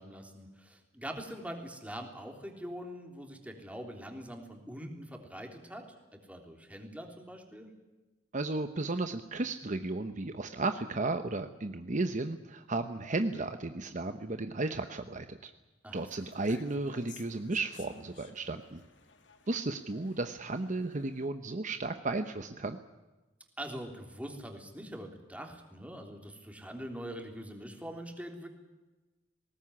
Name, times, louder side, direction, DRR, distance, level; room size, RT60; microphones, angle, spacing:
voice 1, 0.0-5.8 6.3-7.7 15.8-16.0 23.6-28.5, equal, 10° right, 3 dB, 3.5 m, -43 dB
voice 2, 8.3-15.5 15.9-18.8 19.5-22.8, right 2 dB, 45° right, 8 dB, 1.0 m, -34 dB
sound 1, 15.9-21.3, left 6 dB, 85° left, 2.3 m, -57 dB
20.5 x 18.5 x 9.8 m, 1.1 s
head